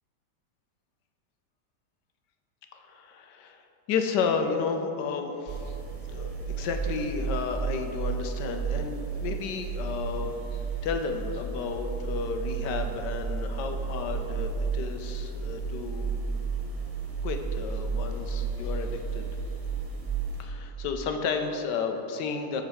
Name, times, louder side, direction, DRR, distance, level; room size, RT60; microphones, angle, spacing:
voice 1, 2.7-3.6 3.9-5.8 6.1-10.3 10.8-16.1 17.2-19.3 20.4-22.6, left 5 dB, 70° left, 5 dB, 1.3 m, -32 dB
sound 1, 5.5-20.4, right 5 dB, 40° right, 0.5 m, -32 dB
8.7 x 4.0 x 6.9 m, 2.8 s
omnidirectional pair, 2.0 m